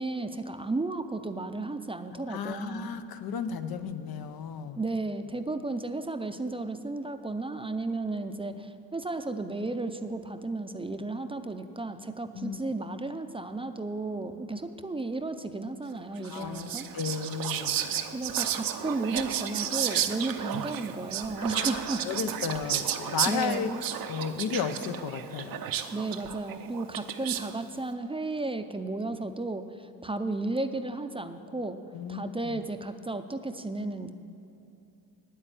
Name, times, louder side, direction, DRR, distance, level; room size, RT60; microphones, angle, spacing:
voice 1, 0.0-2.9 4.8-16.9 18.1-22.0 23.3-23.8 25.9-31.8 32.1-34.1, right 2 dB, 15° right, 9 dB, 0.5 m, -33 dB
voice 2, 2.1-4.8 12.3-12.6 16.2-17.8 21.5-23.7 24.1-25.7 31.9-32.6, left 6 dB, 80° left, 10 dB, 0.7 m, -34 dB
Whispering, 16.2-27.6, right 10 dB, 70° right, 0.7 m, -33 dB
9.1 x 8.4 x 8.8 m, 2.8 s
cardioid pair, 105°, 36 cm